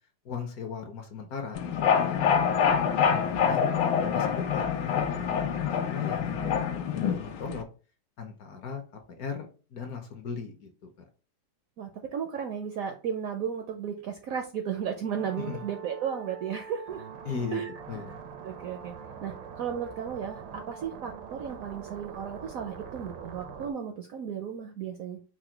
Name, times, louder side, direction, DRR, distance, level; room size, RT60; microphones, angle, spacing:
voice 1, 0.2-3.7 4.0-7.6 8.2-10.7 15.4-15.6 17.2-18.2, left 6 dB, 65° left, 5 dB, 1.0 m, -38 dB
sound 1, 1.5-7.6, left 7 dB, 80° left, 1.3 m, -26 dB
voice 2, 11.8-17.1 17.5-18.0 18.4-18.9 19.2-25.2, right 8 dB, 75° right, 4 dB, 0.8 m, -34 dB
sound 2, 15.1-23.7, right 6 dB, 90° right, 1.4 m, -43 dB
4.8 x 2.2 x 4.4 m, 0.36 s
omnidirectional pair, 2.0 m